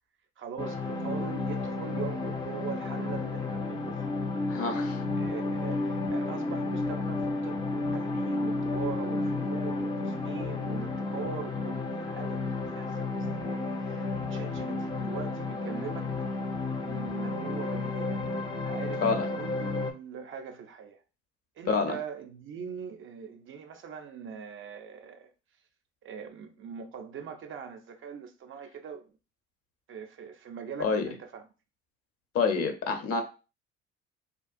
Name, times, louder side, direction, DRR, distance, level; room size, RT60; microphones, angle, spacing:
voice 1, 0.4-4.2 5.2-16.1 16.8-18.2 18.6-19.0 19.3-21.0 21.6-25.3 26.0-29.1 29.9-31.4, right 7 dB, 40° right, 0.5 m, -41 dB
sound 1, 0.6-19.9, left 3 dB, 15° left, 0.4 m, -32 dB
voice 2, 4.5-5.0 19.0-19.3 21.7-22.0 30.8-31.1 32.3-33.2, left 5 dB, 50° left, 0.7 m, -27 dB
2.8 x 2.3 x 2.5 m
hypercardioid pair, 60°, 31 cm